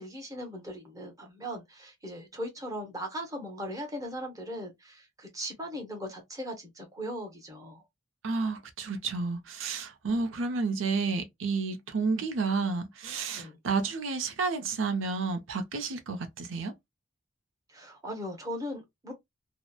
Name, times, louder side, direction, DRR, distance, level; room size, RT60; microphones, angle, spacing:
voice 1, 0.0-7.8 13.4-13.6 17.7-19.1, equal, 20° right, 0.8 m, -39 dB
voice 2, 8.2-16.7, right 4 dB, 80° right, 0.6 m, -31 dB
2.9 x 2.0 x 2.2 m
head